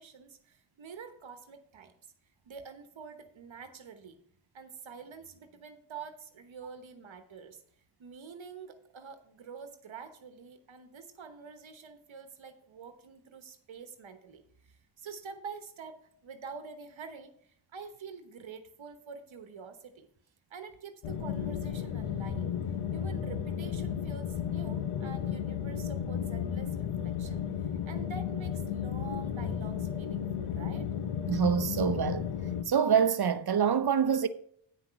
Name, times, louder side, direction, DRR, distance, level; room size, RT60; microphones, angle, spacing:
voice 1, 0.0-1.9 2.5-4.2 4.5-7.6 8.0-20.1 20.5-22.5 22.9-30.9, right 5 dB, 70° right, 1.1 m, -47 dB
sound 1, 21.0-32.6, left 8 dB, 90° left, 0.8 m, -34 dB
voice 2, 31.3-32.3 32.7-34.3, right 7 dB, 50° right, 0.7 m, -26 dB
9.1 x 6.0 x 5.6 m
cardioid pair, 70°, 49 cm